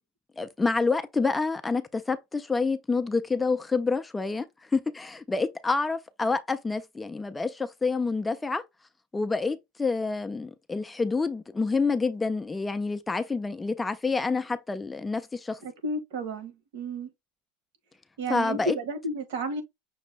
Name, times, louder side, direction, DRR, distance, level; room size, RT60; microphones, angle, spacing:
voice 1, 0.4-4.5 4.7-8.6 9.1-15.6 18.3-18.8, left 4 dB, 10° left, 0.3 m, -28 dB
voice 2, 15.6-17.1 18.2-19.6, right 2 dB, 75° right, 1.3 m, -32 dB
6.1 x 2.1 x 3.9 m
supercardioid pair, 170°, 0 cm